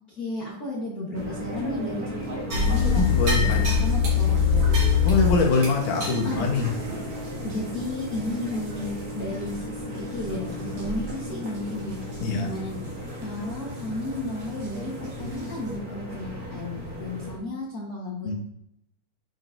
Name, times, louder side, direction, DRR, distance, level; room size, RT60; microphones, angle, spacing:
voice 1, 0.1-3.0 3.4-4.7 6.2-6.4 6.9-7.0 7.4-12.9 13.2-18.3, left 2 dB, 55° left, -5 dB, 1.0 m, -33 dB
sound 1, 1.1-17.4, equal, 75° right, 0.8 m, -36 dB
sound 2, 2.5-9.1 9.4-9.6 10.1-10.3 10.8-11.1 11.4-11.6 12.1-12.2 14.6-14.7 15.3-15.4, left 6 dB, 60° right, 3.6 m, -24 dB
voice 2, 3.0-3.6 5.0-6.7 12.2-12.5 18.2-18.3, left 4 dB, 75° left, 1 dB, 2.8 m, -23 dB
9.3 x 4.7 x 2.6 m, 0.74 s
omnidirectional pair, 3.7 m